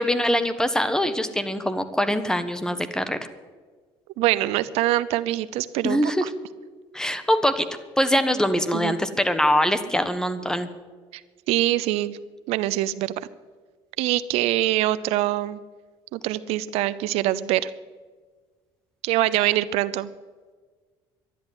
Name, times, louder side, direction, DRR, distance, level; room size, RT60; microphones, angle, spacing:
voice 1, 0.0-3.2 5.8-6.3 6.9-7.7 8.0-10.7, equal, 5° left, 11 dB, 1.2 m, -23 dB
voice 2, 4.2-6.3 8.7-8.9 11.1-11.2 11.5-12.2 12.5-13.3 14.0-15.6 16.1-17.7 19.0-20.1, right 15 dB, 80° right, 16 dB, 0.6 m, -24 dB
12.0 x 11.0 x 9.5 m, 1.5 s
cardioid pair, 100°, 10 cm